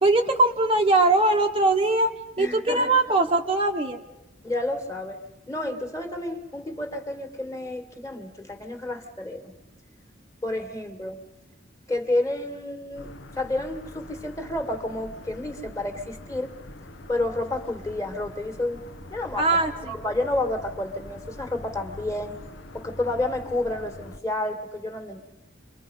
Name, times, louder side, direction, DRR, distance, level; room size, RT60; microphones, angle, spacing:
voice 1, 0.0-2.1 2.4-4.0 19.4-19.9, right 2 dB, 25° right, 3 dB, 0.9 m, -21 dB
voice 2, 2.4-2.9 4.4-9.5 10.4-11.2 11.9-13.1 13.4-16.5 17.1-18.8 19.1-22.4 22.7-25.2, left 1 dB, 15° left, 5 dB, 1.9 m, -30 dB
sound 1, 12.9-24.2, left 1 dB, 70° left, 1.1 m, -43 dB
29.5 x 24.5 x 5.4 m, 0.95 s
head